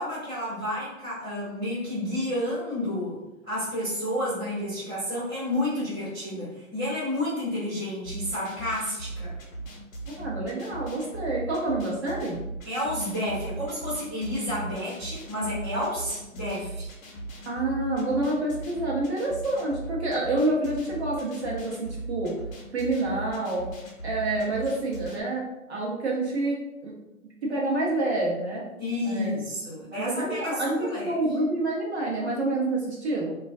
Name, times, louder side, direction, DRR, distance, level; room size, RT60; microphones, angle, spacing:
voice 1, 0.0-3.2 3.5-9.4 12.6-16.9 28.8-31.2, left 1 dB, 5° right, -18 dB, 0.7 m, -30 dB
sound 1, 8.0-25.2, right 2 dB, 70° left, 0.8 m, -38 dB
voice 2, 10.2-12.4 17.4-22.3 22.7-23.7 24.0-26.9 27.4-28.6 29.0-29.3 29.9-33.4, right 2 dB, 50° right, -4 dB, 0.7 m, -28 dB
2.2 x 2.2 x 2.5 m, 0.95 s
hypercardioid pair, 155°, 42 cm